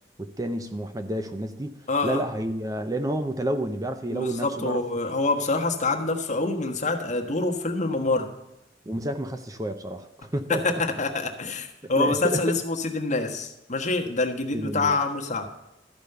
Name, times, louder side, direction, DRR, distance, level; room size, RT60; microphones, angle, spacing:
voice 1, 0.2-1.7 2.0-4.8 8.9-10.8 12.0-12.4 14.5-15.0, right 1 dB, 20° right, 8 dB, 0.6 m, -30 dB
voice 2, 1.9-2.2 4.1-8.3 10.5-15.5, left 3 dB, 40° left, 2 dB, 1.4 m, -26 dB
13.0 x 5.1 x 6.8 m, 0.94 s
head